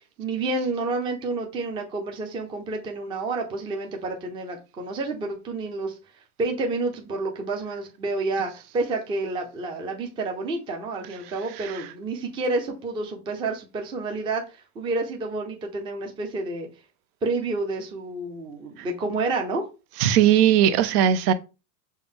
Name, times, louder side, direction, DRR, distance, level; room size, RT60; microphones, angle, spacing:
voice 1, 0.2-5.9 6.4-16.7 17.2-19.6, right 3 dB, 10° right, 0.4 m, -29 dB
voice 2, 20.0-21.3, right 10 dB, 75° right, 0.7 m, -18 dB
5.5 x 2.1 x 3.5 m
supercardioid pair, 145°, 46 cm